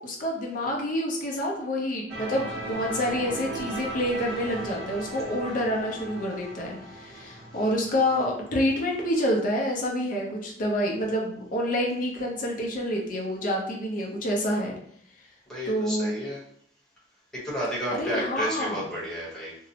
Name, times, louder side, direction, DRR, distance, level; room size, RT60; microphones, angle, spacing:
voice 1, 0.0-14.8 15.6-16.1 17.9-18.8, equal, 50° left, 0 dB, 0.6 m, -28 dB
sound 1, 2.1-8.9, right 1 dB, 70° right, 1.0 m, -38 dB
voice 2, 15.5-16.4 17.3-19.5, equal, 5° left, -7 dB, 0.9 m, -32 dB
2.6 x 2.0 x 2.8 m, 0.65 s
head